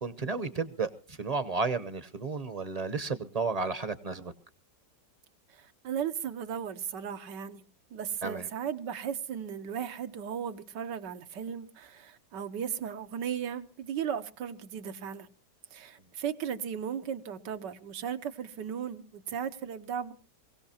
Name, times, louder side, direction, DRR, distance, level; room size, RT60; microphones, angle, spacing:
voice 1, 0.0-4.3 8.2-8.5, right 4 dB, 35° right, 0.7 m, -32 dB
voice 2, 5.5-7.6 7.9-15.3 15.7-20.1, right 8 dB, 85° right, 1.7 m, -36 dB
23.0 x 17.0 x 2.8 m
omnidirectional pair, 1.8 m